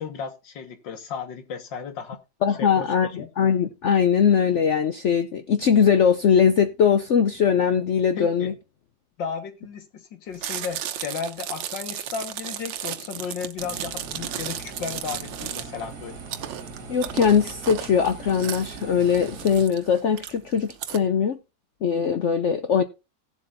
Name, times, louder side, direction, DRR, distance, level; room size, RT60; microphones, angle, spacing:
voice 1, 0.0-2.2 2.5-3.3 8.2-8.5 9.2-16.2, left 6 dB, 85° left, 2.1 m, -34 dB
voice 2, 2.4-8.5 16.9-21.4 21.8-22.8, left 7 dB, 65° left, 0.7 m, -21 dB
Chewing mastication, 10.3-21.0, right 10 dB, 80° right, 1.5 m, -34 dB
sound 1, 13.6-19.6, right 4 dB, 60° right, 2.3 m, -41 dB
17.5 x 7.7 x 2.6 m
omnidirectional pair, 2.0 m